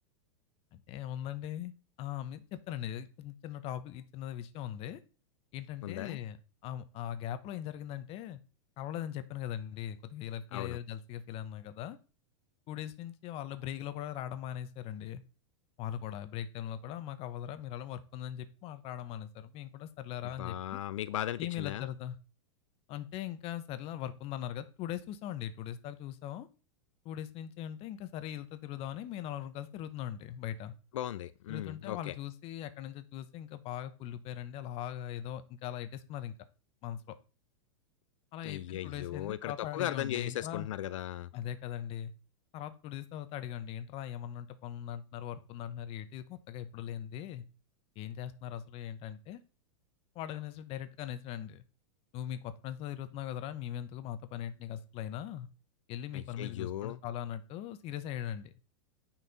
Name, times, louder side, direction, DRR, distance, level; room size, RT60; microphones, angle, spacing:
voice 1, 0.7-1.7 2.0-5.0 5.5-6.4 6.6-8.4 8.8-12.0 12.7-15.2 15.8-20.8 21.4-22.2 22.9-26.5 27.0-30.7 31.5-36.3 36.8-37.1 38.3-40.7 41.3-42.1 42.5-47.4 48.0-49.4 50.1-51.6 52.1-55.5 55.9-58.5, left 11 dB, 40° left, 12 dB, 1.0 m, -40 dB
voice 2, 5.8-6.2 10.5-10.8 20.4-21.9 30.9-32.1 38.4-41.3 56.1-57.0, left 12 dB, 80° left, 14 dB, 0.5 m, -37 dB
9.4 x 5.9 x 4.2 m, 0.35 s
hypercardioid pair, 135°, 16 cm